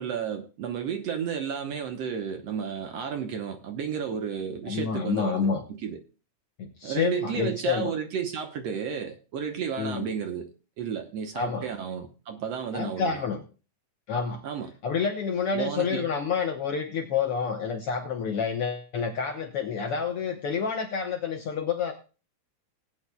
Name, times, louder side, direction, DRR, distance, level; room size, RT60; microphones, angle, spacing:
voice 1, 0.0-6.0 6.8-10.5 10.8-13.2 14.4-14.7 15.5-16.1, right 7 dB, 65° right, 1.8 m, -32 dB
voice 2, 4.6-5.6 6.6-7.9 9.8-10.1 11.3-11.7 12.7-13.4 14.1-14.4 14.8-21.9, left 6 dB, 65° left, 1.5 m, -28 dB
19.0 x 9.2 x 2.3 m
omnidirectional pair, 3.6 m